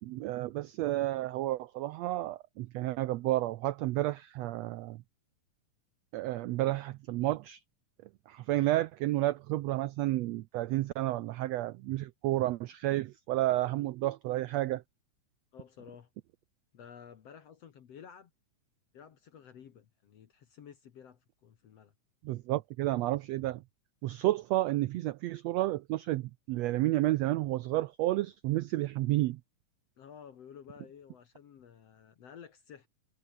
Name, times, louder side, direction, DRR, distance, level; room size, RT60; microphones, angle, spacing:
voice 1, 0.0-5.0 6.1-7.6 8.3-14.8 22.2-23.6 24.0-29.4, right 16 dB, 80° right, 1.5 m, -31 dB
voice 2, 15.5-16.1 16.7-18.3 18.9-21.9 30.0-32.9, left 8 dB, 55° left, 2.4 m, -52 dB
omnidirectional pair, 3.6 m